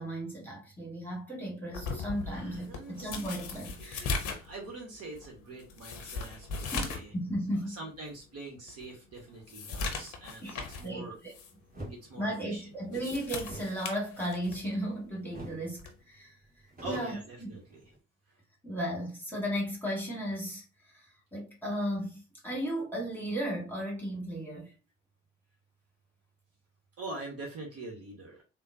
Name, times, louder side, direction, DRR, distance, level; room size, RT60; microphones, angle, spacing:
voice 1, 0.0-4.1 6.7-7.7 10.4-11.3 12.2-16.4 16.8-17.5 18.6-24.7, equal, 5° left, 1.5 m, -35 dB
sound 1, 1.7-7.1 7.5-7.6 8.1-8.2 8.7-10.9 11.3-11.5 12.7-14.7 15.8-16.0, left 4 dB, 60° left, 0.7 m, -38 dB
voice 2, 2.2-3.2 3.8-7.1 7.7-11.2 11.9-12.9 16.8-17.8 27.0-28.4, right 2 dB, 45° right, 1.1 m, -44 dB
sound 2, 11.7-12.0 13.4-14.9 15.3-15.7 16.0-16.1 16.4-18.0, right 1 dB, 25° right, 1.5 m, -46 dB
3.6 x 2.0 x 2.6 m
figure-of-eight pair, 45°, 35 cm